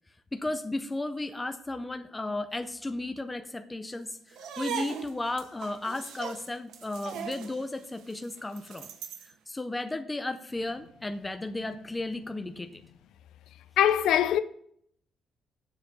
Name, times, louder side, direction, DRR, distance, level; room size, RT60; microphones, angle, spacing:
voice 1, 0.3-8.9 9.2-12.8, left 2 dB, 10° left, 0.5 m, -34 dB
sound 1, 4.3-9.3, right 7 dB, 80° right, 0.9 m, -40 dB
voice 2, 13.8-14.4, left 10 dB, 80° left, 0.5 m, -22 dB
7.5 x 6.9 x 5.7 m
cardioid pair, 180°, 0 cm